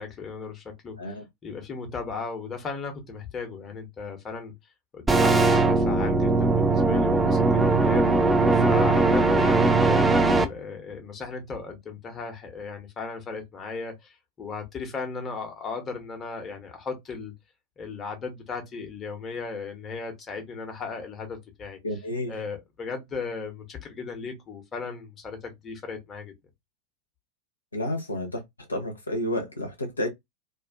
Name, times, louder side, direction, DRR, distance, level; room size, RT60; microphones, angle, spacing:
voice 1, 0.0-4.5 4.9-8.1 8.5-17.3 17.8-21.8 22.3-26.3, left 4 dB, 20° left, 0.8 m, -36 dB
sound 1, 5.1-10.4, right 3 dB, 10° right, 0.4 m, -20 dB
voice 2, 21.8-22.3 27.7-28.4 28.7-30.1, left 1 dB, 80° left, 0.7 m, -30 dB
2.4 x 2.4 x 2.3 m
figure-of-eight pair, 90°, 0 cm